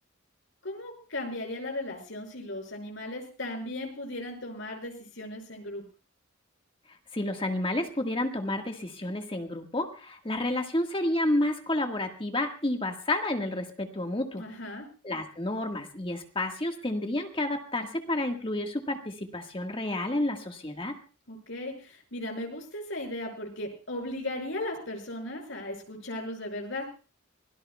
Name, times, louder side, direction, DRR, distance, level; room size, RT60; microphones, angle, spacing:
voice 1, 0.6-5.8 14.3-14.9 21.3-26.9, left 1 dB, 70° left, 2 dB, 6.1 m, -36 dB
voice 2, 7.1-14.4 15.0-20.9, left 1 dB, 25° left, 4 dB, 1.6 m, -30 dB
25.0 x 17.5 x 2.3 m, 0.36 s
head